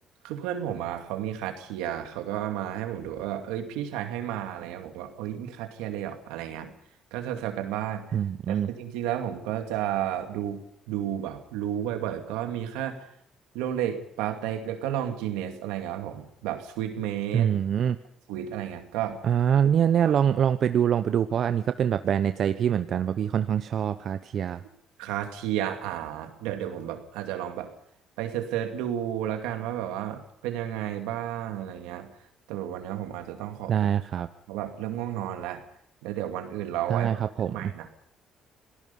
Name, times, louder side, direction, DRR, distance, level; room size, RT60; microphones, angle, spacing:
voice 1, 0.2-6.7 7.1-8.2 8.5-13.1 13.5-17.5 18.3-19.2 20.1-20.2 25.0-27.7 28.2-32.1 32.5-33.7 34.5-35.6 36.0-37.2 37.5-37.9, right 11 dB, 85° right, 6 dB, 2.4 m, -32 dB
voice 2, 8.1-8.7 17.3-18.0 19.2-24.6 33.7-34.3 36.9-37.7, right 9 dB, 60° right, 11 dB, 0.8 m, -24 dB
26.0 x 18.0 x 5.5 m, 0.69 s
supercardioid pair, 65°, 0 cm